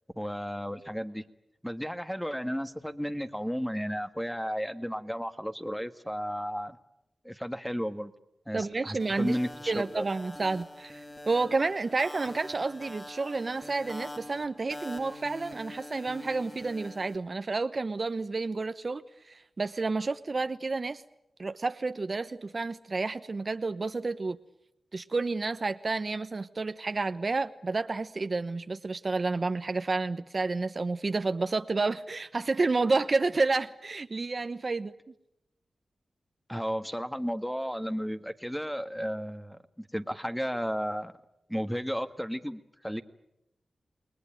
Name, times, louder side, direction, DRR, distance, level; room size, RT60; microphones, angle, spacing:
voice 1, 0.2-1.2 1.6-6.8 7.2-8.1 8.5-10.1 36.5-41.1 41.5-43.0, equal, 5° left, 9 dB, 1.8 m, -33 dB
voice 2, 8.5-9.4 9.7-21.0 21.4-24.4 24.9-34.9, right 3 dB, 50° right, 10 dB, 1.1 m, -30 dB
sound 1, 9.0-17.2, left 1 dB, 25° left, 2.9 m, -44 dB
29.0 x 20.0 x 9.2 m, 0.86 s
cardioid pair, 55°, 0 cm